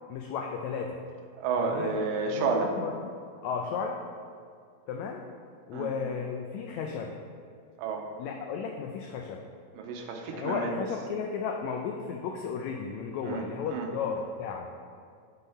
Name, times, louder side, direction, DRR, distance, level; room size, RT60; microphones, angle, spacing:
voice 1, 0.1-1.0 1.6-2.0 2.3-3.1 3.4-4.0 4.9-5.3 5.7-7.1 8.2-9.4 10.3-14.7, left 6 dB, 90° left, 2 dB, 1.6 m, -34 dB
voice 2, 1.3-2.7 5.7-5.9 7.8-8.1 9.8-10.7 13.3-13.9, right 5 dB, 90° right, 3 dB, 2.3 m, -31 dB
6.2 x 5.4 x 5.5 m, 2.2 s
omnidirectional pair, 3.8 m